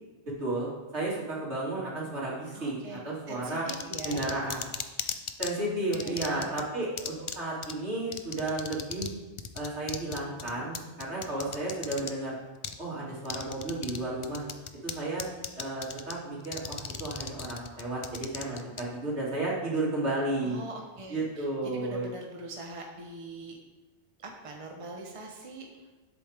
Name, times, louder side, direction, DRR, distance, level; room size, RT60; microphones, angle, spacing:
voice 1, 0.4-3.6 4.0-4.8 5.4-9.1 9.5-12.4 12.8-14.4 14.8-15.2 15.5-20.6 21.1-22.1, right 2 dB, 80° right, -6 dB, 3.3 m, -33 dB
voice 2, 2.5-4.2 5.6-6.6 10.6-10.7 20.4-23.6 24.2-25.7, right 2 dB, 30° right, 1 dB, 1.1 m, -43 dB
sound 1, 3.7-5.5 5.9-6.6 7.0-7.4 7.6-7.7 8.1-9.1 9.4-12.1 12.6-12.8 13.2-14.0 14.2-14.9 15.2-16.1 16.4-18.8, left 6 dB, 45° left, 0.4 m, -36 dB
10.0 x 8.2 x 3.6 m, 1.2 s
omnidirectional pair, 1.1 m